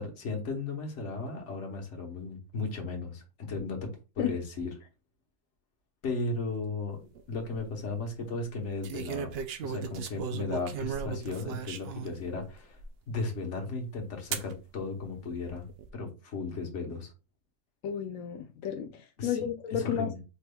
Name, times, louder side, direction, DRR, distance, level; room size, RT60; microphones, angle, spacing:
voice 1, 0.0-3.9 4.1-4.7 6.0-7.0 7.3-9.3 9.6-12.8 13.1-15.7 15.9-17.1 19.2-19.4 19.7-20.2, left 3 dB, 65° left, 1.4 m, -35 dB
sound 1, 7.2-7.6 8.8-12.2 12.8-12.9 14.3-14.5 15.4-15.9, right 7 dB, 65° right, 0.7 m, -36 dB
voice 2, 17.8-20.2, left 8 dB, 90° left, 1.0 m, -32 dB
5.2 x 3.4 x 2.2 m
omnidirectional pair, 1.3 m